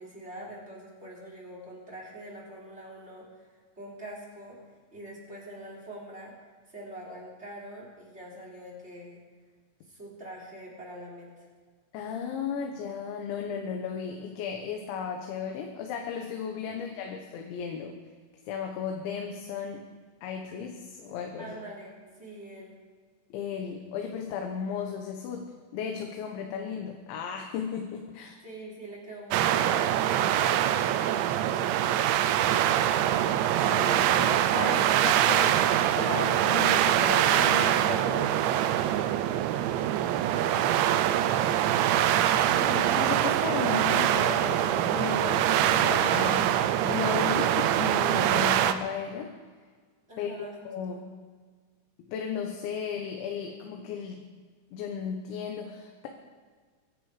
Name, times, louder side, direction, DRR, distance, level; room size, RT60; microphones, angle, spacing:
voice 1, 0.0-3.5 3.8-4.6 4.9-6.3 6.7-9.2 9.9-11.5 16.6-17.1 21.4-22.8 28.4-31.6 50.1-50.6 50.9-51.0, right 1 dB, 15° right, -2 dB, 3.6 m, -44 dB
voice 2, 11.9-18.0 18.5-19.8 20.2-21.6 23.3-28.4 33.6-35.6 35.9-38.3 42.3-49.3 50.2-50.3 50.7-51.1 52.1-54.2 54.7-56.1, left 7 dB, 80° left, 3 dB, 3.5 m, -35 dB
sound 1, 29.3-48.7, right 11 dB, 80° right, 2.9 m, -24 dB
23.5 x 11.0 x 5.0 m, 1.6 s
omnidirectional pair, 5.2 m